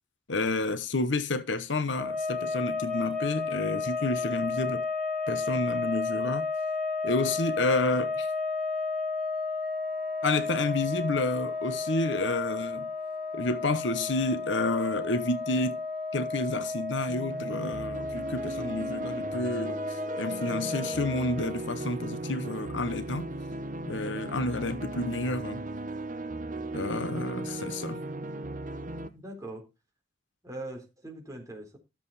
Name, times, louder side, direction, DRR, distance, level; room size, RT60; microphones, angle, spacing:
voice 1, 0.3-4.8 5.3-6.5 7.0-8.3 10.2-12.9 13.3-15.8 16.1-23.3 23.9-25.6 26.7-28.0, left 2 dB, 70° left, 1.0 m, -30 dB
sound 1, 1.9-21.6, left 3 dB, 5° right, 4.4 m, -33 dB
sound 2, 17.1-29.1, right 2 dB, 45° right, 1.0 m, -37 dB
voice 2, 29.1-29.7 30.4-31.8, right 1 dB, 20° right, 3.9 m, -41 dB
13.0 x 7.5 x 4.2 m
head